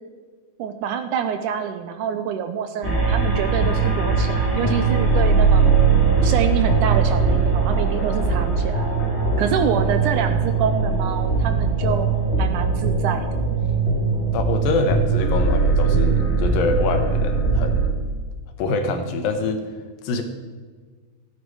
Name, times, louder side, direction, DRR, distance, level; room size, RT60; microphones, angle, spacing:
voice 1, 0.6-5.7 6.2-8.9 9.4-12.1 12.4-13.3, right 7 dB, 75° right, 8 dB, 1.9 m, -26 dB
sound 1, 2.8-17.9, right 4 dB, 20° left, 2.5 m, -20 dB
voice 2, 8.0-8.4 14.3-17.9 18.6-19.6 20.0-20.2, left 3 dB, 80° left, 6 dB, 2.9 m, -25 dB
15.0 x 10.5 x 4.8 m, 1.5 s
omnidirectional pair, 4.0 m